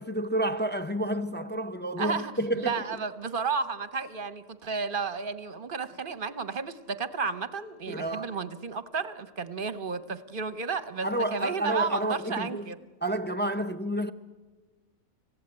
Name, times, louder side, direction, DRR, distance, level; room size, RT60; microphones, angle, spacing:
voice 1, 0.0-2.8 7.9-8.3 11.0-12.7 13.0-14.1, right 1 dB, 15° left, 0.4 m, -30 dB
voice 2, 2.0-12.8, right 5 dB, 45° right, 0.9 m, -32 dB
25.5 x 16.0 x 9.7 m
omnidirectional pair, 1.4 m